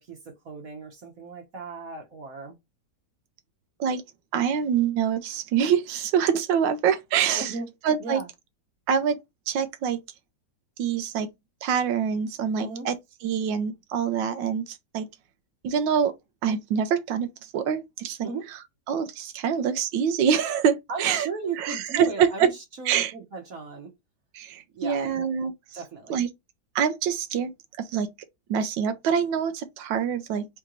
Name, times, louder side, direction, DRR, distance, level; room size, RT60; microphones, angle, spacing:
voice 1, 0.0-2.6 7.3-7.7 8.0-8.3 12.5-12.9 18.2-18.5 20.9-23.9 24.7-25.1 25.7-26.3, right 4 dB, 55° right, 1.3 m, -36 dB
voice 2, 4.3-7.5 7.8-8.2 8.9-9.2 9.5-10.0 10.8-11.3 11.6-12.9 13.2-15.1 15.6-16.1 16.4-18.3 18.9-21.3 21.6-22.5 22.9-23.1 24.3-25.5 26.1-26.3 26.7-27.5 27.8-28.1 28.5-30.5, right 7 dB, 85° right, 1.3 m, -25 dB
3.8 x 3.5 x 3.0 m
omnidirectional pair, 2.0 m